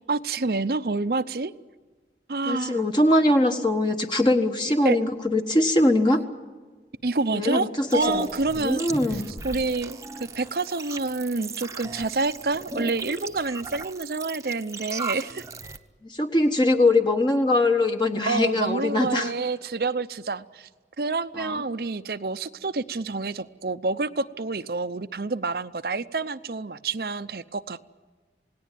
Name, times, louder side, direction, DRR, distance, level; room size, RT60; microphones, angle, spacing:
voice 1, 0.1-1.5 2.3-2.8 4.8-5.0 7.0-8.8 9.1-10.0 10.3-15.4 18.3-20.7 21.0-27.8, right 3 dB, 55° right, 11 dB, 0.7 m, -28 dB
voice 2, 2.4-6.2 7.3-8.2 8.6-9.3 16.1-19.3 21.4-21.6, left 1 dB, 25° left, 4 dB, 1.3 m, -22 dB
sound 1, 7.9-15.8, right 3 dB, 15° right, 0.9 m, -36 dB
28.0 x 18.5 x 9.2 m, 1.4 s
head